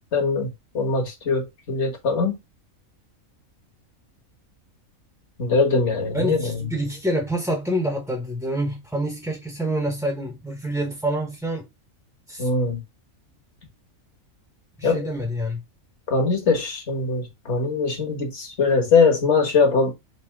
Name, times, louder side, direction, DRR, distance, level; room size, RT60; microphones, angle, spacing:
voice 1, 0.1-0.5 0.7-2.3 5.4-6.5 12.4-12.8 14.8-15.0 16.1-19.9, left 4 dB, 55° left, 1.6 m, -21 dB
voice 2, 6.1-11.7 12.3-12.5 14.8-15.6, right 1 dB, ahead, 0.7 m, -27 dB
4.2 x 2.8 x 4.5 m
omnidirectional pair, 1.4 m